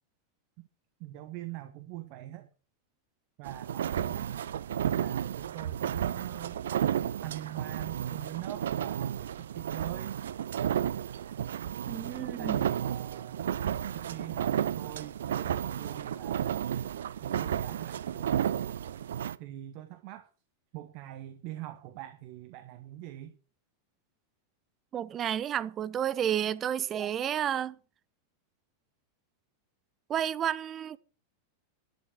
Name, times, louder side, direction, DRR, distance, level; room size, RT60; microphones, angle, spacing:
voice 1, 1.0-2.5 3.4-4.3 4.8-6.6 7.2-10.1 12.4-13.4 13.9-16.7 17.2-18.3 19.4-20.3 20.7-23.4, right 15 dB, 45° right, 1.4 m, -44 dB
sound 1, 3.4-19.4, right 9 dB, 60° right, 0.7 m, -32 dB
voice 2, 11.9-12.6 24.9-27.8 30.1-31.0, right 9 dB, 25° right, 0.8 m, -31 dB
12.0 x 11.5 x 6.2 m
figure-of-eight pair, 90°, 0 cm